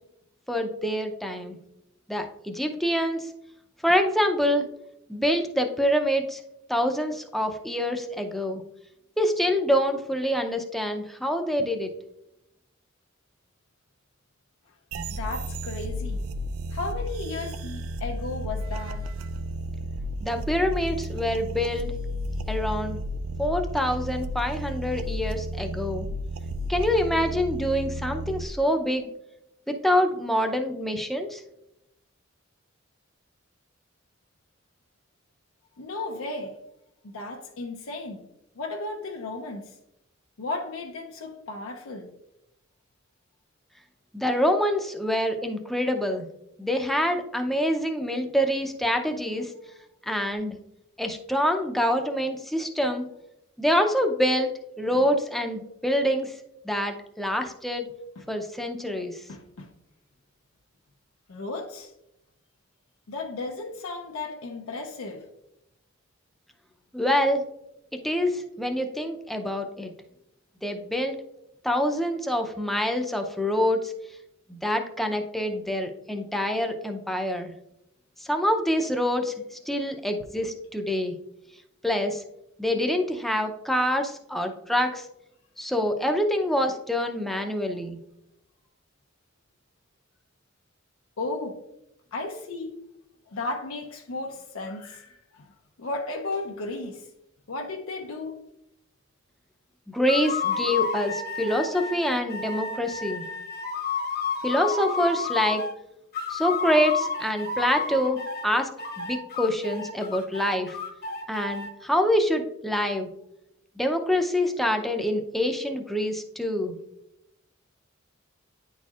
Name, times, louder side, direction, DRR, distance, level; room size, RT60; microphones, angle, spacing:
voice 1, 0.5-1.6 2.1-3.3 3.8-4.7 5.1-6.4 6.7-8.6 9.2-11.9 20.2-21.9 22.4-23.0 23.4-26.1 26.7-29.1 29.7-31.4 44.1-46.3 46.6-49.5 50.1-50.6 51.0-53.1 53.6-54.5 54.8-56.3 56.6-57.9 58.3-59.2 66.9-67.4 67.9-69.9 70.6-71.1 71.6-73.9 74.5-77.5 78.2-81.1 81.8-82.2 82.6-85.0 85.6-88.0 99.9-103.2 104.4-105.6 106.3-108.7 109.0-110.8 111.3-113.1 113.8-116.8, equal, ahead, 0.5 m, -26 dB
sound 1, 14.9-28.4, equal, 90° right, 0.4 m, -33 dB
voice 2, 15.2-16.3 16.7-19.1 35.8-36.6 37.0-38.2 38.6-39.7 40.4-42.1 54.9-55.0 58.2-58.3 59.3-59.7 61.3-61.9 63.1-65.3 91.2-91.6 92.1-92.8 93.3-95.5 95.8-97.1 97.5-98.4, left 2 dB, 90° left, 0.6 m, -34 dB
sound 2, 100.1-105.7 106.1-108.5 108.8-111.7, left 5 dB, 50° left, 1.0 m, -31 dB
9.6 x 4.2 x 2.4 m
head